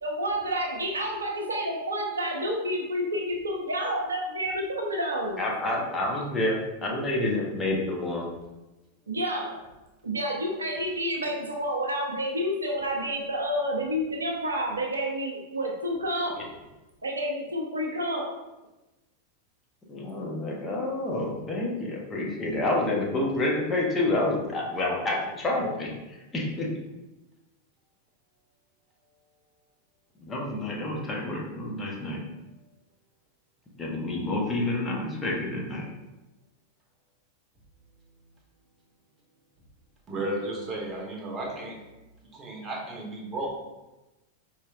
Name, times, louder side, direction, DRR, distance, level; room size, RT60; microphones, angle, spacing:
voice 1, 0.0-5.4 9.1-9.6 10.0-16.3 17.0-18.2, equal, 75° right, 0 dB, 0.6 m, -29 dB
voice 2, 5.4-8.2 16.3-16.4 19.9-26.7 30.2-32.2 33.8-35.9, left 2 dB, 20° left, -2 dB, 0.8 m, -28 dB
voice 3, 40.1-41.8 42.3-43.5, right 1 dB, 25° right, -2 dB, 1.0 m, -33 dB
4.3 x 3.1 x 2.4 m, 1.0 s
figure-of-eight pair, 90°, 0 cm